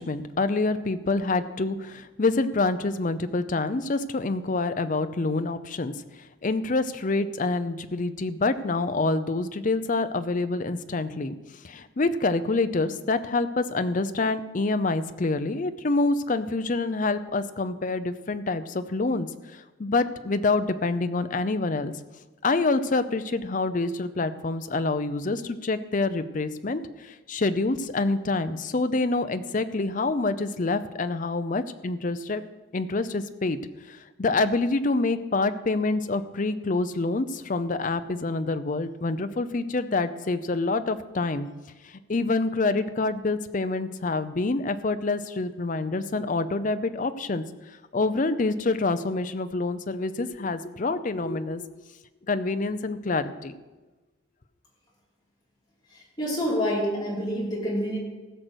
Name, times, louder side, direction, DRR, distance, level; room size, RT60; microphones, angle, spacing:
voice 1, 0.0-11.4 11.6-19.3 19.5-21.9 22.4-32.4 32.7-33.6 33.9-41.5 41.8-47.4 47.9-51.8 52.3-53.6, left 3 dB, 40° left, 11 dB, 0.5 m, -27 dB
voice 2, 56.2-58.0, equal, 20° left, -5 dB, 3.1 m, -27 dB
15.5 x 6.5 x 6.3 m, 1.2 s
head